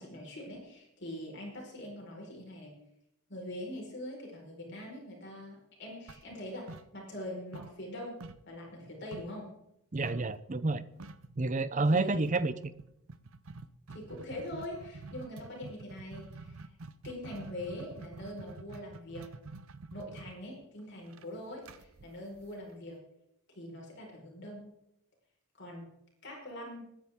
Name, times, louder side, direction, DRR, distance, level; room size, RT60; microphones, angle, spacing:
voice 1, 0.0-2.7 3.3-9.5 11.9-12.4 13.9-16.7 17.0-19.3 19.9-23.0 23.5-24.7 25.5-25.8 26.2-26.9, left 1 dB, 50° left, -1 dB, 4.8 m, -43 dB
sound 1, 6.1-7.3 7.5-9.4 10.1-10.4 10.7-10.8 11.0-11.4 12.1-22.9, right 3 dB, 70° right, 0.7 m, -48 dB
voice 2, 9.9-10.8 11.4-12.5, right 2 dB, 35° right, 15 dB, 0.6 m, -29 dB
20.5 x 10.0 x 3.7 m, 0.79 s
head